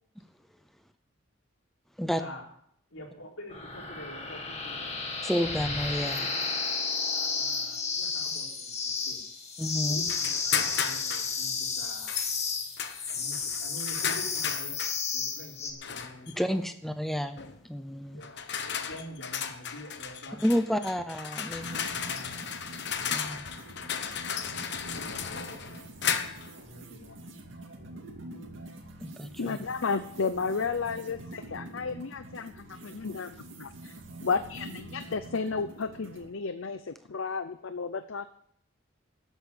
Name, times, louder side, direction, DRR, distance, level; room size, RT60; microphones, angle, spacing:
voice 1, 2.9-5.0 6.2-6.3 7.1-9.2 9.9-12.1 13.1-14.8 15.1-16.4 18.1-20.4 21.7-24.0 24.9-25.8 26.6-27.3 29.2-29.5, left 1 dB, 90° left, -1 dB, 4.4 m, -47 dB
sound 1, 3.5-15.7, left 5 dB, 35° left, 1.9 m, -32 dB
voice 2, 5.2-6.3 9.6-10.1 16.3-18.2 20.4-21.8 23.1-23.4 29.0-29.7, equal, ahead, 8 dB, 0.7 m, -30 dB
sound 2, 10.1-11.3 12.1-12.3 12.8-15.0 15.8-16.3 17.4-17.6 18.2-26.5, left 7 dB, 55° left, 1.1 m, -34 dB
sound 3, 21.5-36.3, right 1 dB, 65° right, 2.3 m, -46 dB
voice 3, 29.4-33.9 34.2-38.3, left 4 dB, 70° left, 11 dB, 0.6 m, -33 dB
13.0 x 8.3 x 8.4 m, 0.68 s
head